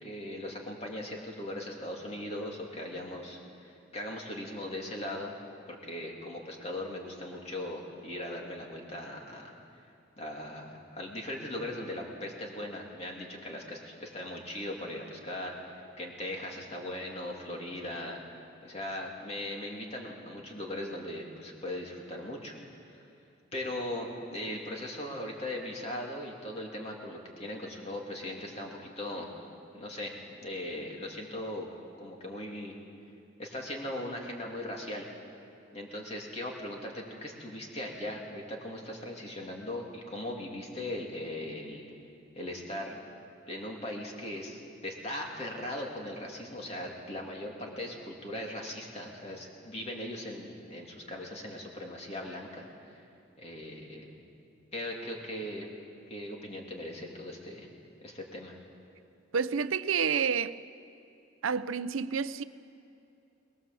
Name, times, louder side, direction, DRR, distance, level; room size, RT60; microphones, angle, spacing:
voice 1, 0.0-5.3 5.7-9.5 10.2-18.2 18.6-22.6 22.9-23.1 23.5-29.3 29.7-30.1 30.4-31.7 32.0-32.8 33.4-35.1 35.7-41.8 42.3-43.0 43.5-53.0 53.4-54.1 54.7-55.7 56.1-57.7 58.0-58.6, left 1 dB, 30° left, 2.9 m, -39 dB
voice 2, 59.3-60.6 61.4-62.4, right 6 dB, 90° right, 0.6 m, -29 dB
22.5 x 20.5 x 7.7 m
head